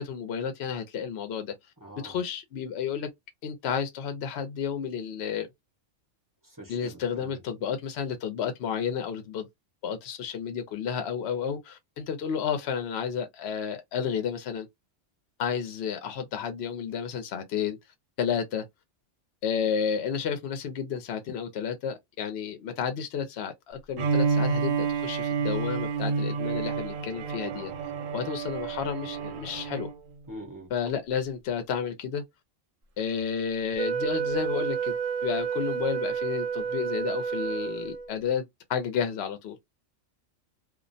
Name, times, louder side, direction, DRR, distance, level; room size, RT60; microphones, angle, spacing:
voice 1, 0.0-1.5 2.0-3.1 3.4-5.5 6.7-9.4 9.8-14.7 15.4-17.8 18.2-18.6 19.4-27.7 28.1-29.9 30.7-32.2 33.0-35.0 35.2-38.4 38.7-39.6, left 7 dB, 65° left, 0.7 m, -31 dB
voice 2, 1.8-2.2 6.5-7.4 30.3-30.7, right 1 dB, 20° right, 0.5 m, -44 dB
Bowed string instrument, 24.0-30.0, right 5 dB, 85° right, 1.0 m, -29 dB
Wind instrument woodwind instrument, 33.8-38.1, right 7 dB, 70° right, 0.3 m, -30 dB
2.4 x 2.0 x 2.5 m
omnidirectional pair, 1.3 m